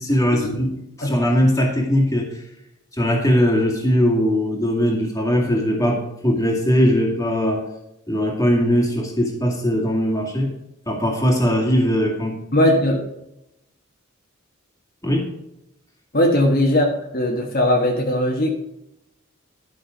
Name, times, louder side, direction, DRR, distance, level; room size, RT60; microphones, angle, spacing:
voice 1, 0.0-2.4 2.9-7.7 8.1-10.5 10.9-12.4 15.0-15.3, equal, 15° left, 0 dB, 2.1 m, -20 dB
voice 2, 12.5-13.0 16.1-16.9 17.1-18.5, left 1 dB, 45° left, 0 dB, 1.4 m, -18 dB
11.5 x 6.2 x 5.1 m, 0.85 s
head